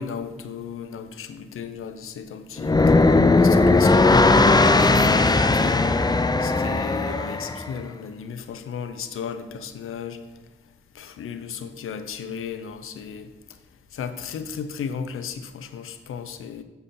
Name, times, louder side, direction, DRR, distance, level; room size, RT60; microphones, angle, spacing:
voice 1, 0.0-3.0 3.3-5.8 6.4-10.2 10.9-13.3 13.9-16.6, left 7 dB, 80° left, 10 dB, 0.7 m, -35 dB
sound 1, 2.6-7.7, left 3 dB, 20° left, 0.5 m, -18 dB
6.8 x 6.8 x 4.3 m, 1.2 s
supercardioid pair, 45°, 21 cm